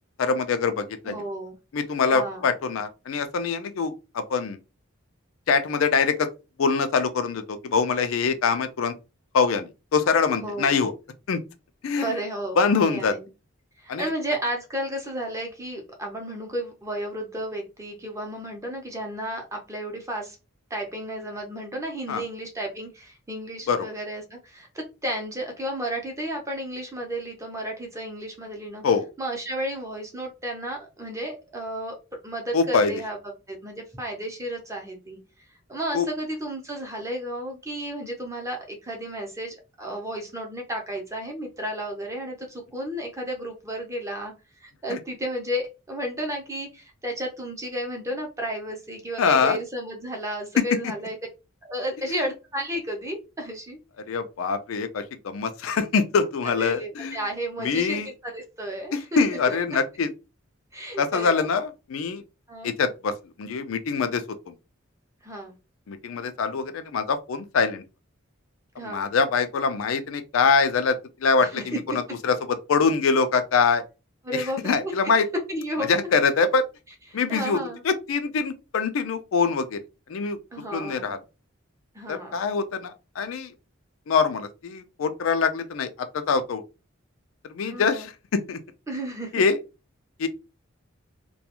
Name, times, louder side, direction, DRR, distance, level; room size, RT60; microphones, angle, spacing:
voice 1, 0.2-1.2 1.7-4.6 5.5-6.3 6.6-8.9 9.3-10.9 11.3-11.4 11.8-12.2 12.6-13.1 13.9-14.1 22.1-22.2 23.7-23.9 28.8-29.0 32.5-32.9 35.9-36.1 44.9-45.0 49.2-49.6 50.6-50.7 52.1-52.2 54.1-57.2 57.6-58.1 58.9-60.1 61.0-62.2 62.6-63.1 63.4-64.5 65.9-67.8 68.8-71.8 72.2-73.8 74.3-75.2 75.9-76.6 77.1-77.6 77.8-79.8 80.1-80.4 80.7-81.2 82.1-83.5 84.1-86.6 87.5-88.6 89.3-89.6 90.2-90.3, left 5 dB, 80° left, 0.4 m, -24 dB
voice 2, 1.1-1.6 2.1-2.5 10.4-10.9 12.0-12.6 12.9-13.3 13.8-20.4 20.7-28.8 29.2-32.0 32.2-33.2 33.5-35.2 35.7-44.3 44.6-51.2 51.7-53.8 56.6-59.6 60.7-61.4 62.5-62.7 65.2-65.5 68.8-69.1 71.4-71.6 74.2-74.9 75.5-76.1 77.3-77.8 80.5-81.1 81.9-82.4 87.6-88.1 88.9-89.4, right 1 dB, 15° right, 0.6 m, -33 dB
2.4 x 2.2 x 2.9 m
head